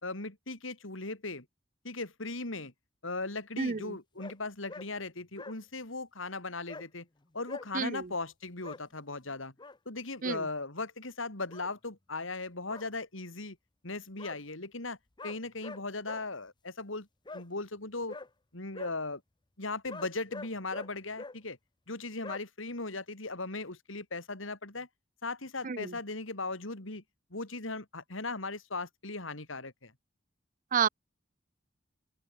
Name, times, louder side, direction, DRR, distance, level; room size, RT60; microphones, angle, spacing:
voice 1, 0.0-1.5 1.8-2.7 3.0-7.1 7.3-9.5 9.9-13.6 13.8-15.0 15.2-17.1 17.3-18.2 18.5-19.2 19.6-21.6 21.9-24.9 25.2-27.0 27.3-29.9, left 3 dB, 75° left, 3.7 m, -38 dB
voice 2, 3.6-3.8 7.7-8.0 10.2-10.4 25.6-25.9 30.7-30.9, right 6 dB, 45° right, 0.6 m, -29 dB
sound 1, 4.2-4.3 4.7-4.9 5.1-5.6 6.7-6.8 7.5-7.7 8.6-8.8 9.3-9.8 11.5-11.7 12.7-12.9 14.2-14.4 15.2-16.2 17.3-17.4 18.1-18.3 18.7-18.9 19.9-20.9 21.2-21.4 22.2-22.4, left 3 dB, 25° left, 0.9 m, -44 dB
open air
head